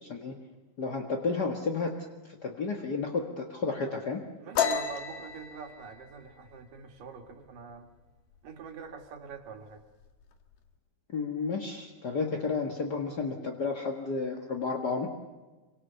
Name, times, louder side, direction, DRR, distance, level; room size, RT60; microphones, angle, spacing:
voice 1, 0.0-0.3 0.8-1.9 2.2-4.2 11.1-15.1, left 4 dB, 45° left, 2 dB, 1.3 m, -32 dB
voice 2, 4.4-7.9 8.4-9.8, right 6 dB, 60° right, 4 dB, 3.4 m, -45 dB
sound 1, 4.6-8.0 8.3-8.7 9.0-9.6 9.8-10.6, left 7 dB, 70° left, 3.7 m, -33 dB
27.5 x 25.5 x 7.0 m, 1.2 s
omnidirectional pair, 4.5 m